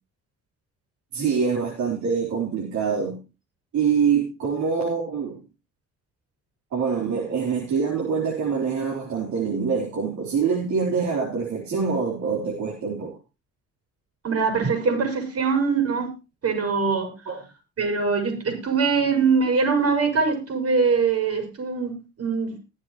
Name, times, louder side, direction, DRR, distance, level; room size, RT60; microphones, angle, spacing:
voice 1, 1.1-3.2 3.7-5.4 6.7-13.2 17.3-17.4, right 6 dB, 70° right, -4 dB, 4.1 m, -25 dB
voice 2, 14.2-16.1 16.4-17.1 17.8-22.6, right 5 dB, 55° right, 4 dB, 6.0 m, -23 dB
21.5 x 7.6 x 3.1 m, 0.30 s
cardioid pair, 90°, 30 cm